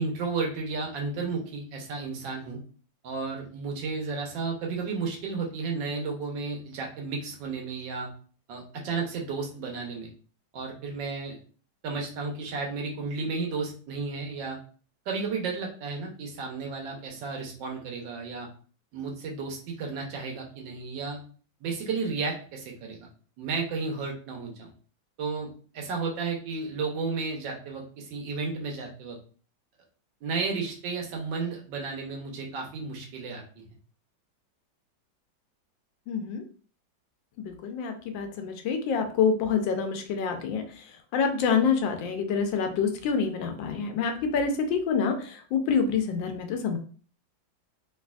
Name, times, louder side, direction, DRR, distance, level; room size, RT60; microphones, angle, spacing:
voice 1, 0.0-2.6 3.0-8.1 8.5-10.1 10.5-11.4 11.8-14.6 15.1-18.5 18.9-21.2 21.6-23.0 23.4-24.7 25.2-29.2 30.2-33.6, right 4 dB, 70° right, 0 dB, 1.5 m, -33 dB
voice 2, 36.1-36.4 37.4-40.8 41.1-46.8, left 6 dB, 80° left, 6 dB, 1.3 m, -27 dB
3.3 x 3.2 x 2.3 m, 0.41 s
omnidirectional pair, 2.1 m